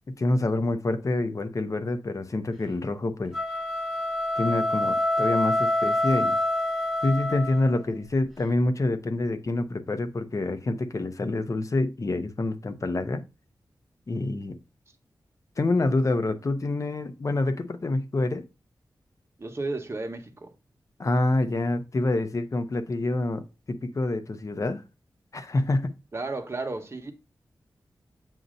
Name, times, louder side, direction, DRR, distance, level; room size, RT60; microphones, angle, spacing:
voice 1, 0.2-3.4 4.4-6.4 7.0-13.2 14.1-14.6 15.6-18.4 21.0-24.8 25.3-25.9, left 2 dB, 45° left, 0.7 m, -27 dB
sound 1, 3.2-7.8, left 1 dB, ahead, 1.5 m, -26 dB
voice 2, 19.4-20.5 26.1-27.1, right 3 dB, 35° right, 1.1 m, -33 dB
7.4 x 2.7 x 5.1 m
wide cardioid pair, 85°, 8 cm